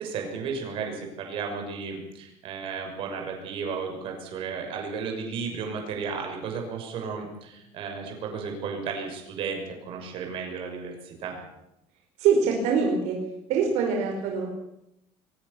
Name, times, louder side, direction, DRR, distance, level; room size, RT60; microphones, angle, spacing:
voice 1, 0.0-11.4, right 5 dB, 50° right, 3 dB, 6.4 m, -34 dB
voice 2, 12.2-13.2 13.5-14.5, right 5 dB, 70° right, 1 dB, 4.8 m, -23 dB
22.5 x 20.0 x 7.1 m, 0.84 s
cardioid pair, 175°, 12 cm